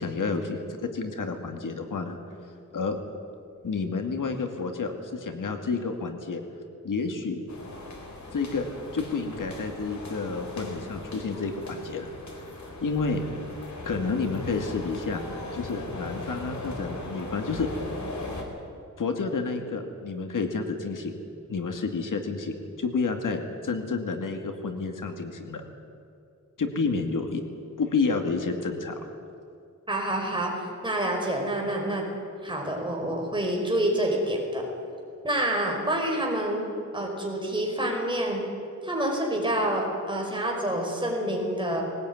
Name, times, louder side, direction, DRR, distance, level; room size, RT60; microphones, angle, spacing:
voice 1, 0.0-2.2 2.7-3.0 3.6-6.4 6.8-7.4 8.3-8.7 8.9-12.1 12.8-13.2 13.9-15.2 15.5-17.7 19.0-21.2 21.5-25.6 26.6-27.4 27.8-29.0, left 4 dB, 90° left, 5 dB, 2.3 m, -30 dB
sound 1, 7.5-18.4, left 2 dB, 65° left, 4.0 m, -39 dB
voice 2, 29.9-32.0 32.4-34.6 35.2-36.6 36.9-38.4 38.8-41.8, right 1 dB, 15° right, -1 dB, 5.0 m, -27 dB
20.0 x 19.0 x 9.6 m, 2.5 s
wide cardioid pair, 165°, 31 cm